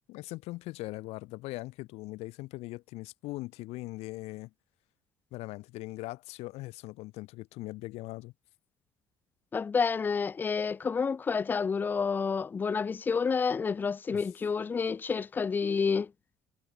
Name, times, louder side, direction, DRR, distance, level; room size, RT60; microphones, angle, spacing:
voice 1, 0.1-4.5 5.3-8.3 14.1-14.3, left 20 dB, 75° left, 1.1 m, -40 dB
voice 2, 9.5-16.1, left 5 dB, 20° left, 0.3 m, -29 dB
cardioid pair, 155°, 11 cm